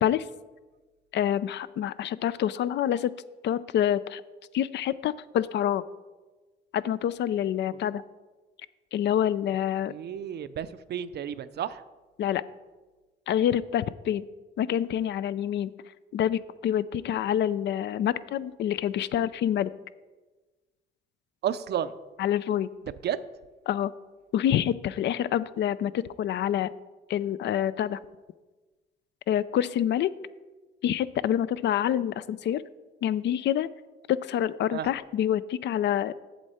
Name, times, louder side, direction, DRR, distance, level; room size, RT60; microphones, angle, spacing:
voice 1, 1.1-3.1 3.4-4.2 4.5-5.8 6.7-8.0 8.9-9.9 12.2-12.4 13.3-14.3 14.6-15.7 16.1-19.7 22.2-22.7 23.7-23.9 24.3-26.7 27.1-28.0 29.3-30.1 30.8-32.6 33.0-33.7 34.1-36.1, left 10 dB, 65° left, 17 dB, 0.4 m, -27 dB
voice 2, 9.9-11.8 21.4-21.9 23.0-23.2 34.7-34.9, right 9 dB, 55° right, 14 dB, 0.5 m, -32 dB
8.0 x 7.5 x 4.3 m, 1.2 s
cardioid pair, 90°, 20 cm